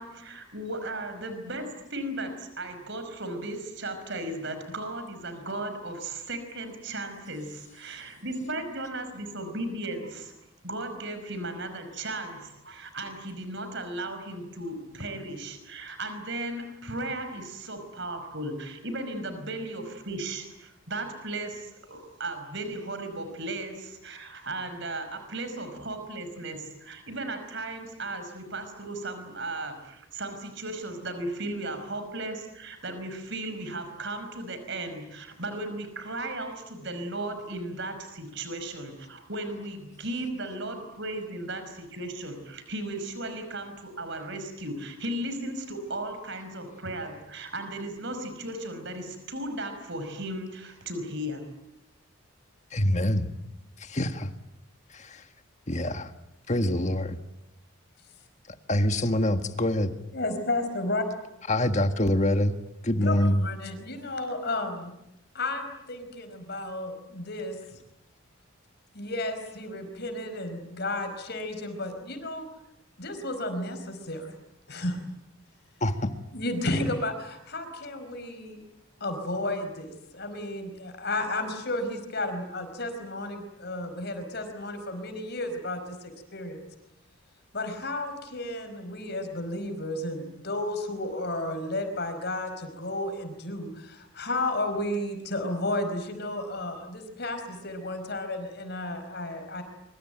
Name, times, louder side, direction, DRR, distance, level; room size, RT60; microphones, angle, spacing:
voice 1, 0.0-10.3 10.6-51.5, right 2 dB, 60° right, 8 dB, 5.3 m, -36 dB
voice 2, 52.7-53.3 53.8-54.3 54.9-55.2 55.7-56.1 56.5-57.2 58.7-59.9 61.5-62.6 62.8-63.4 75.8-76.1, left 1 dB, 35° left, 8 dB, 1.6 m, -25 dB
voice 3, 60.1-61.0 62.9-64.9 65.3-67.8 68.9-72.5 73.0-74.3 74.7-75.0 76.3-78.6 79.0-86.6 87.5-99.6, left 2 dB, 50° left, 7 dB, 4.9 m, -32 dB
25.5 x 24.5 x 9.1 m, 0.86 s
head